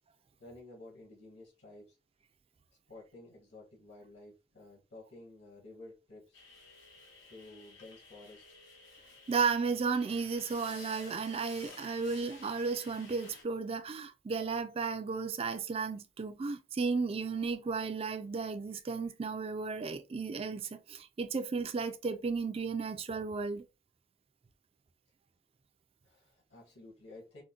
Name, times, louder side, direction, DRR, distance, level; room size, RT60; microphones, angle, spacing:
voice 1, 0.4-2.0 2.9-6.4 7.2-8.4 26.0-27.4, left 2 dB, 70° left, 1.6 m, -52 dB
sound 1, 6.3-13.4, left 4 dB, 85° left, 1.1 m, -53 dB
voice 2, 9.3-23.7, right 4 dB, 30° right, 0.4 m, -34 dB
3.7 x 2.2 x 2.4 m
head